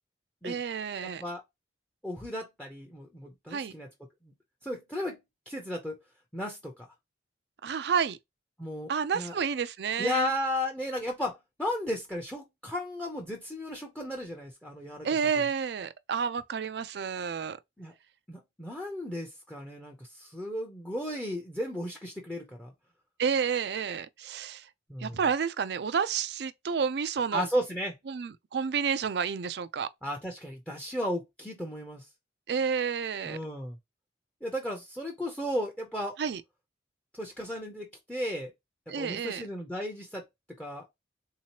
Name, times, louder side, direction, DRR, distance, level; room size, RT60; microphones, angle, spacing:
voice 1, 0.4-1.2 3.5-3.7 7.6-8.2 8.9-10.3 15.0-17.6 23.2-24.7 25.0-27.5 28.1-29.9 32.5-33.4 36.2-36.4 38.9-39.4, right 6 dB, 60° right, 0.4 m, -30 dB
voice 2, 1.0-1.4 2.0-3.9 4.6-5.2 5.5-6.0 6.3-6.9 8.6-9.4 10.0-15.1 17.8-17.9 18.3-22.7 24.9-25.2 27.3-27.9 30.0-32.1 33.3-33.8 34.4-36.2 37.1-38.5 38.9-40.3 40.6-40.8, left 1 dB, 5° left, 0.6 m, -34 dB
3.7 x 2.8 x 2.9 m
head